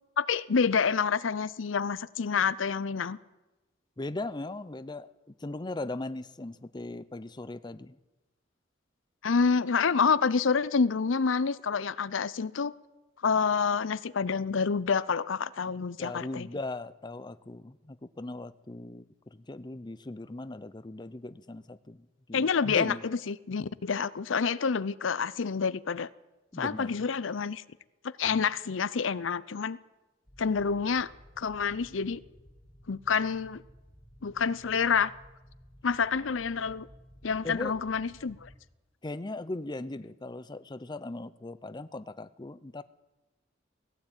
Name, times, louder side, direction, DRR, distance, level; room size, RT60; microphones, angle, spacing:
voice 1, 0.2-3.2 9.2-12.7 13.2-16.5 22.3-26.1 26.6-27.6 28.2-29.8 30.4-31.1 31.4-32.2 32.9-33.6 34.2-35.1 35.8-36.9 37.2-38.5, left 5 dB, 85° left, 18 dB, 0.6 m, -28 dB
voice 2, 4.0-8.0 16.0-23.0 26.5-27.1 28.2-28.5 37.4-37.8 39.0-42.8, left 2 dB, 25° left, 14 dB, 0.6 m, -39 dB
sound 1, 30.3-38.6, equal, 5° left, 2.3 m, -55 dB
18.0 x 16.0 x 9.0 m, 1.1 s
head